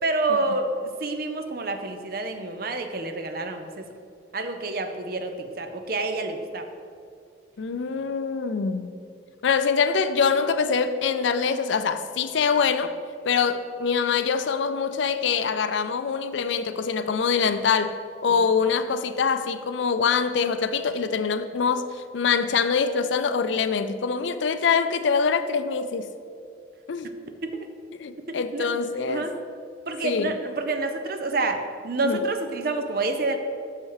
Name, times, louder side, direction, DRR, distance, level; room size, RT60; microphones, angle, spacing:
voice 1, 0.0-3.9 4.3-6.7 18.4-18.5 27.4-27.7 28.3-28.7 29.1-29.3 29.9-33.4, right 2 dB, 50° right, 7 dB, 0.6 m, -28 dB
voice 2, 7.6-8.9 9.4-12.9 13.2-17.9 18.2-26.1 26.9-27.1 27.9-29.3 30.0-30.3 32.0-32.2, left 5 dB, 75° left, 11 dB, 0.4 m, -24 dB
6.7 x 5.7 x 4.8 m, 2.4 s
head